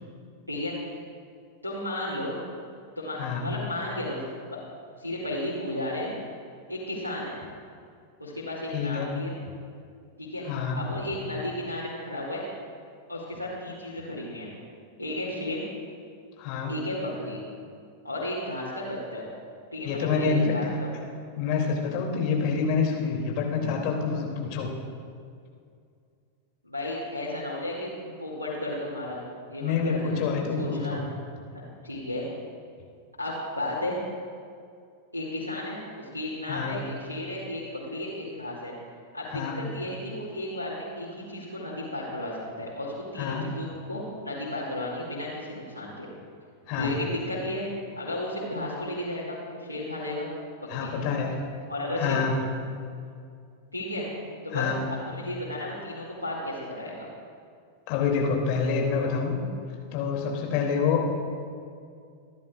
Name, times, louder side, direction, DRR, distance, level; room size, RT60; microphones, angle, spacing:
voice 1, 1.6-2.4 3.0-4.2 5.0-6.1 6.7-7.4 8.2-9.3 10.2-10.5 10.8-12.4 13.1-14.5 15.0-15.6 16.7-17.4 18.0-19.2 19.7-20.9 26.6-29.2 29.5-30.3 30.6-31.1 31.5-32.3 33.2-34.0 35.1-38.7 39.1-46.1 46.8-47.7 48.0-50.3 50.7-51.1 51.7-52.2 53.7-54.1 54.4-57.1, left 1 dB, 90° right, -6 dB, 2.1 m, -33 dB
voice 2, 3.2-3.5 8.7-9.1 10.5-10.9 16.4-16.7 19.8-20.6 21.4-24.7 29.6-31.1 36.5-36.8 39.3-39.6 43.2-43.5 46.7-47.0 50.7-51.6 52.0-52.5 54.5-54.9 57.9-59.4 59.9-61.1, left 5 dB, 45° left, 0 dB, 2.6 m, -27 dB
27.0 x 10.5 x 2.4 m, 2.3 s
figure-of-eight pair, 90°, 0 cm